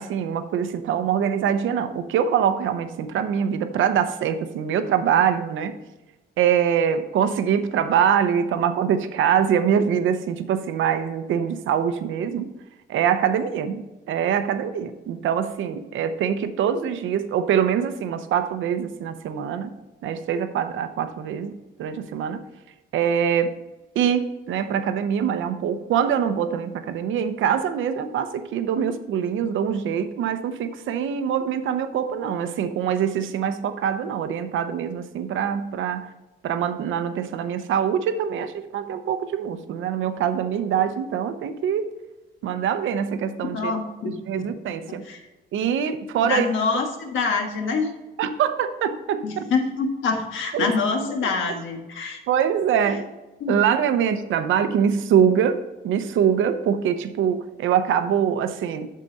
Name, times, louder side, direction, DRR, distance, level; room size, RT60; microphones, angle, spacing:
voice 1, 0.0-5.8 6.4-12.5 12.9-19.8 20.0-22.4 22.9-23.6 23.9-36.1 36.4-41.9 42.4-43.8 44.3-45.0 45.5-46.5 48.2-49.4 50.5-50.7 52.3-53.0 53.5-58.9, right 8 dB, 80° right, 10 dB, 0.8 m, -24 dB
voice 2, 43.5-44.5 44.9-45.2 46.2-47.9 49.2-52.2 52.8-52.9 53.4-53.6, left 4 dB, 80° left, 3 dB, 1.5 m, -26 dB
8.5 x 6.6 x 4.1 m, 1.1 s
cardioid pair, 90°, 20 cm